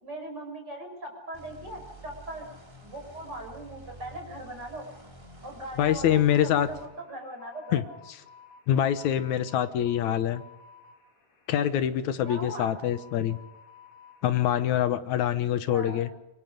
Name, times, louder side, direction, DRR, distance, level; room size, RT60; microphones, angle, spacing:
voice 1, 0.0-2.5 2.8-4.9 5.4-6.8 7.1-7.8 12.2-12.7 15.7-16.1, right 1 dB, 30° right, 2 dB, 6.6 m, -40 dB
sound 1, 1.3-6.9, right 1 dB, 10° right, 3.5 m, -49 dB
voice 2, 5.8-6.7 7.7-7.8 8.7-10.4 11.5-13.4 14.2-16.1, left 10 dB, 70° left, 12 dB, 2.2 m, -25 dB
sound 2, 6.0-14.7, left 6 dB, 50° left, 4.6 m, -54 dB
27.0 x 23.0 x 5.2 m, 0.97 s
omnidirectional pair, 3.8 m